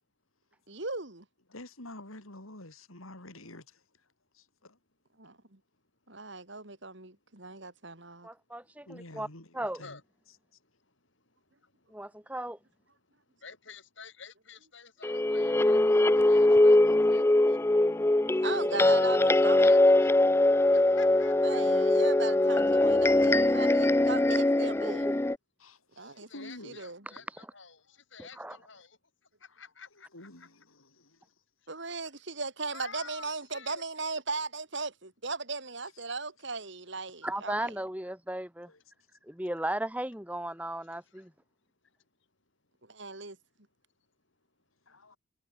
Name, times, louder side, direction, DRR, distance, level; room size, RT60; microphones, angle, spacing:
voice 1, 0.7-1.2 5.2-5.6 6.1-8.3 18.4-19.7 21.4-25.1 26.0-27.0 31.7-37.7 42.9-43.4, right 3 dB, 55° right, 3.1 m, -37 dB
voice 2, 1.5-3.8 4.3-4.8 8.9-10.0 25.6-26.8 28.5-28.6 29.5-29.6 29.9-30.6 38.7-38.8 44.9-45.2, left 1 dB, 80° left, 5.5 m, -48 dB
voice 3, 8.2-9.3 9.5-9.8 11.9-12.6 24.8-25.2 27.3-27.5 28.2-28.6 37.2-38.7 39.2-41.3, right 1 dB, 5° right, 2.2 m, -36 dB
voice 4, 13.3-17.8 18.3-19.0 19.3-20.1 20.7-21.9 26.0-29.0 29.4-30.3 32.7-33.8 41.1-41.2, left 5 dB, 60° left, 5.8 m, -51 dB
sound 1, 15.0-25.3, left 1 dB, 10° left, 0.3 m, -22 dB
head